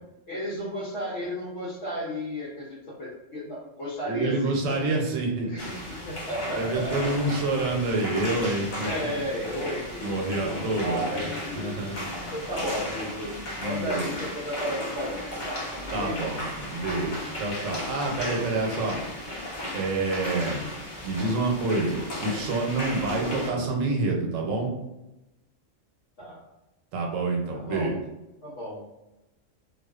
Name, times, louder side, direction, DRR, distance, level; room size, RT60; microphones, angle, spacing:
voice 1, 0.3-4.4 5.4-7.5 8.8-10.5 10.8-11.9 12.3-13.3 13.6-15.7 16.0-16.2 26.2-26.5 27.5-28.0 28.4-29.1, equal, 65° left, -8 dB, 1.0 m, -34 dB
voice 2, 4.0-5.5 6.6-9.1 10.0-11.0 11.6-12.1 13.6-14.1 15.9-19.0 19.7-20.6 21.0-24.7 26.9-27.9, right 2 dB, 85° right, 1 dB, 1.0 m, -27 dB
sound 1, 5.6-23.5, left 1 dB, 50° left, 0.6 m, -35 dB
2.5 x 2.2 x 2.3 m, 0.95 s
omnidirectional pair, 1.3 m